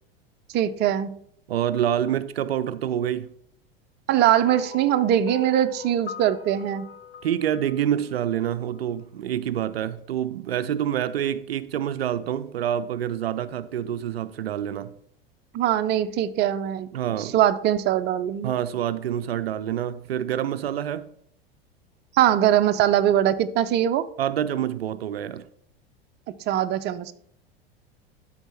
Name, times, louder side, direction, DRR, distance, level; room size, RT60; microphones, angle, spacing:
voice 1, 0.5-1.1 4.1-6.9 15.5-16.9 17.2-18.5 22.1-24.1 26.5-27.1, right 11 dB, 35° right, 0.6 m, -22 dB
voice 2, 1.5-3.3 7.2-14.9 16.9-17.3 18.4-21.1 24.2-25.5, right 10 dB, 75° right, 0.5 m, -27 dB
sound 1, 4.4-8.8, left 6 dB, 75° left, 1.3 m, -41 dB
12.5 x 4.2 x 4.4 m
figure-of-eight pair, 85°, 30 cm